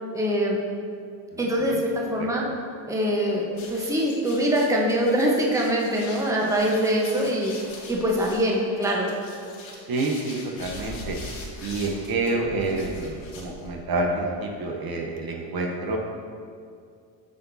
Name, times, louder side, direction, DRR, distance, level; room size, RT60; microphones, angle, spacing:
voice 1, 0.1-0.6 1.4-2.5 2.9-7.6 7.9-9.1, equal, 5° right, -2 dB, 1.0 m, -23 dB
sound 1, 3.5-14.0, left 2 dB, 75° left, 1.6 m, -42 dB
voice 2, 9.9-11.2 11.6-16.0, right 2 dB, 50° right, 1 dB, 0.9 m, -28 dB
8.6 x 5.9 x 2.7 m, 2.3 s
cardioid pair, 100°, 46 cm